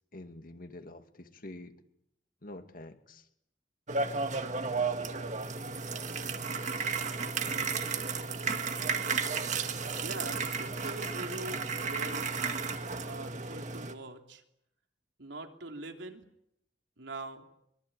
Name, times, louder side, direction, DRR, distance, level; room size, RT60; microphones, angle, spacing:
voice 1, 0.1-1.8 2.4-3.3, left 1 dB, 50° left, 7 dB, 2.3 m, -47 dB
sound 1, 3.9-13.9, right 4 dB, 40° right, 1.9 m, -33 dB
voice 2, 10.0-12.4 13.1-14.4 15.2-16.2 17.0-17.4, right 2 dB, 90° right, 4 dB, 3.2 m, -43 dB
24.5 x 23.0 x 9.0 m, 0.77 s
head